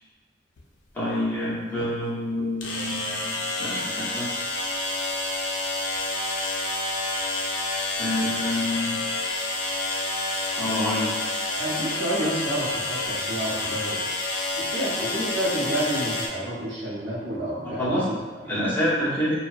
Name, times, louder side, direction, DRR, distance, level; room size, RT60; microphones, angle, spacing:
sound 1, 0.6-0.7 2.6-16.3, left 2 dB, 80° left, 0.4 m, -29 dB
voice 1, 0.9-3.3 3.6-4.3 8.0-8.9 10.6-11.1 17.8-18.0 18.5-19.4, left 1 dB, 10° left, -9 dB, 0.6 m, -27 dB
voice 2, 11.6-14.1 14.6-18.7, right 1 dB, 60° right, -6 dB, 0.7 m, -30 dB
2.6 x 2.1 x 2.4 m, 1.3 s
head